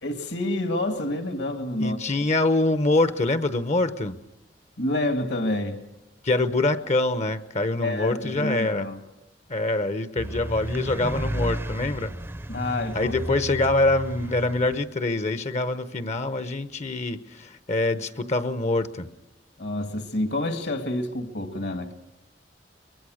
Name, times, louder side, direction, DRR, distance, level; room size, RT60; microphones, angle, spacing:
voice 1, 0.0-2.0 4.8-5.8 7.8-9.0 12.5-13.1 19.6-21.9, left 1 dB, 65° left, 8 dB, 2.2 m, -28 dB
voice 2, 1.8-4.2 6.2-8.9 9.5-12.1 12.9-19.1, left 2 dB, 40° left, 13 dB, 0.9 m, -25 dB
sound 1, 10.2-14.7, right 1 dB, 15° right, 0.7 m, -32 dB
23.0 x 22.0 x 6.5 m, 1.0 s
head